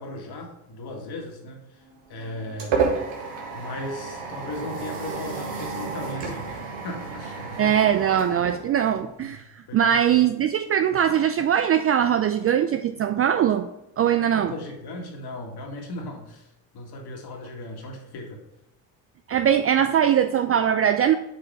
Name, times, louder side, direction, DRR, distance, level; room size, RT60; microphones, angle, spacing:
voice 1, 0.0-1.8 2.1-2.8 3.5-7.7 8.3-8.5 9.2-9.4 9.7-10.2 14.3-16.5 16.7-18.4, left 1 dB, 50° left, 1 dB, 2.1 m, -37 dB
sound 1, 1.9-9.3, right 5 dB, 60° right, 1.7 m, -31 dB
voice 2, 7.6-9.4 9.7-13.7 14.0-14.5 19.3-21.2, right 9 dB, 30° right, 9 dB, 0.4 m, -21 dB
7.7 x 4.7 x 3.5 m, 0.90 s
hypercardioid pair, 60°, 49 cm